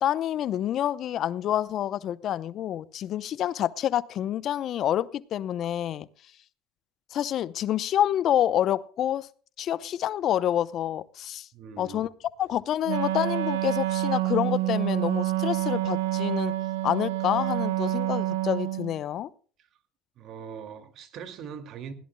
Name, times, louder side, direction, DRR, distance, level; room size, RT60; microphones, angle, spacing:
voice 1, 0.0-6.1 7.1-9.3 9.6-11.5 11.8-12.1 12.4-16.5 16.8-19.3, left 11 dB, 50° left, 0.7 m, -27 dB
voice 2, 11.5-12.0 20.2-21.9, right 7 dB, 55° right, 2.3 m, -41 dB
Wind instrument woodwind instrument, 12.8-19.0, right 16 dB, 80° right, 0.9 m, -28 dB
20.5 x 16.5 x 2.2 m
hypercardioid pair, 75°, 0 cm